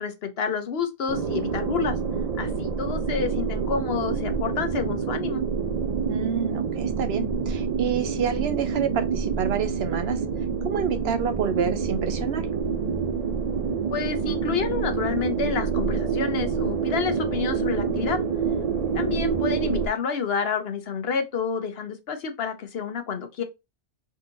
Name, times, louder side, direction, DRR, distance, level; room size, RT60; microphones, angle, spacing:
voice 1, 0.0-2.0 2.4-5.4 13.9-18.2 18.9-23.4, left 6 dB, 65° left, 1.0 m, -29 dB
sound 1, 1.1-19.9, right 5 dB, 45° right, 0.5 m, -27 dB
voice 2, 6.1-10.2 10.6-12.5, right 7 dB, 70° right, 0.9 m, -28 dB
3.9 x 2.7 x 3.8 m
omnidirectional pair, 1.1 m